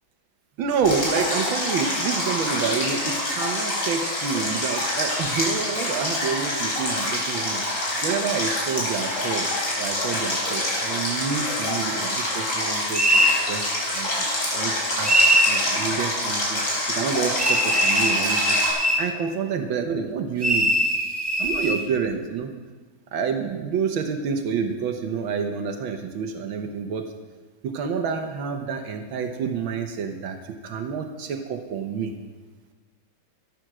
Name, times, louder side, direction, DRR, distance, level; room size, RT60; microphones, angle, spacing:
voice 1, 0.6-7.6 8.0-9.5 9.8-14.1 14.4-18.6 18.8-20.7 21.4-22.5 23.1-27.1 27.6-32.1, right 6 dB, 85° right, 5 dB, 1.8 m, -28 dB
Stream, 0.8-18.7, left 1 dB, 55° left, 4.7 m, -26 dB
sound 1, 12.9-13.4 15.0-15.6 17.4-19.1 20.4-21.8, equal, 35° right, 0.4 m, -21 dB
14.0 x 10.5 x 6.1 m, 1.4 s
omnidirectional pair, 2.1 m